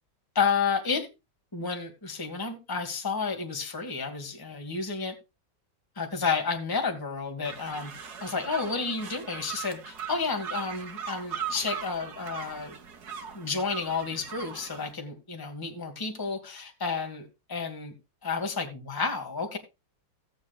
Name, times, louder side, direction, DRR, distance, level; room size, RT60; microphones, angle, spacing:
voice 1, 0.3-1.1 1.5-5.1 5.9-7.9 8.2-12.7 13.3-17.9 18.2-19.6, left 5 dB, 10° left, 1.5 m, -31 dB
sound 1, 7.5-14.9, right 7 dB, 60° right, 1.7 m, -39 dB
16.5 x 8.0 x 2.4 m
omnidirectional pair, 2.1 m